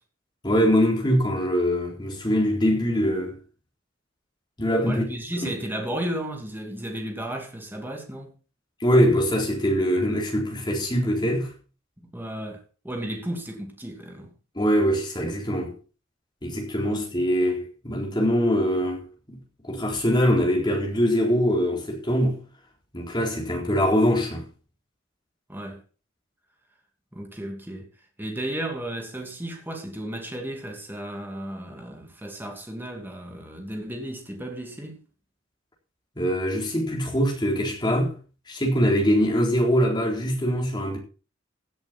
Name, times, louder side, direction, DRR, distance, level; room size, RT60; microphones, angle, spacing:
voice 1, 0.4-3.4 4.6-5.1 5.4-5.5 8.8-11.5 14.6-15.7 16.4-19.4 19.7-22.4 22.9-24.5 36.2-38.1 38.5-41.0, equal, 20° left, 4.0 m, -23 dB
voice 2, 4.8-8.3 12.0-14.3 16.9-17.0 25.5-25.8 27.1-27.9 28.2-35.0, right 1 dB, 10° right, 2.8 m, -34 dB
16.5 x 8.0 x 4.5 m
head